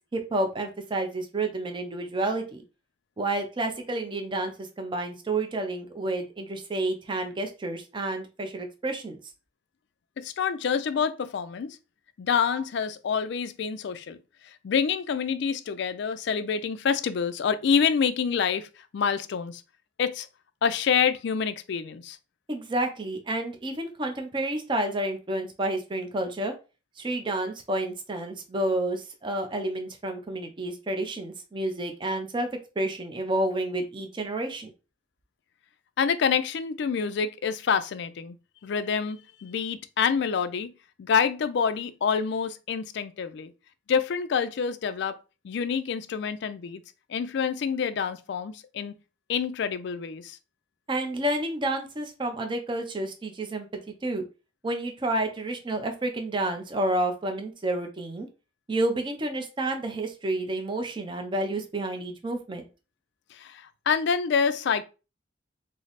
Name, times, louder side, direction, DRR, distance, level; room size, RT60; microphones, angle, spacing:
voice 1, 0.1-2.6 3.2-9.2 12.5-12.6 22.5-26.5 27.0-32.5 32.8-34.7 50.9-53.7 54.0-54.2 54.6-58.3 58.7-62.6, right 1 dB, 25° right, 0.5 m, -30 dB
voice 2, 10.2-11.8 12.2-14.2 14.6-18.7 18.9-19.6 20.0-20.3 20.6-22.2 36.0-38.4 38.6-40.7 41.0-43.5 43.9-45.2 45.4-46.8 47.1-48.9 49.3-50.4 63.3-64.8, left 6 dB, 65° left, 0.4 m, -27 dB
3.2 x 2.0 x 4.0 m
head